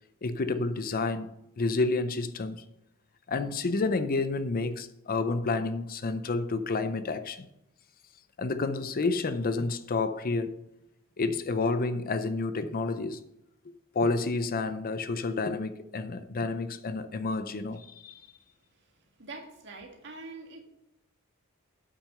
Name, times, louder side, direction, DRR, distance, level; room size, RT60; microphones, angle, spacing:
voice 1, 0.2-1.3 1.6-2.6 3.3-7.5 8.4-10.6 11.2-13.2 13.9-18.2, left 3 dB, 40° left, 0.5 m, -30 dB
voice 2, 19.2-20.6, right 3 dB, 55° right, 1.8 m, -44 dB
8.4 x 6.1 x 6.6 m
head